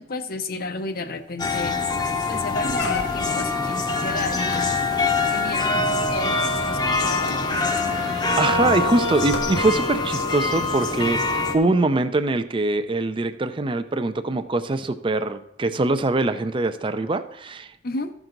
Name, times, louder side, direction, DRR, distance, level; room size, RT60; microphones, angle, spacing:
voice 1, 0.0-1.8 2.3-4.6 5.3-8.1 17.8-18.1, left 3 dB, 55° left, 9 dB, 0.7 m, -32 dB
sound 1, 1.0-1.1 1.4-1.7 2.1-2.2 2.7-3.5 4.5-10.0 10.6-10.7, left 3 dB, 85° left, 1.1 m, -35 dB
sound 2, 1.4-11.6, left 3 dB, 25° left, 0.8 m, -24 dB
voice 2, 8.4-17.7, right 2 dB, 30° right, 10 dB, 0.5 m, -23 dB
14.0 x 6.0 x 3.9 m, 0.75 s
head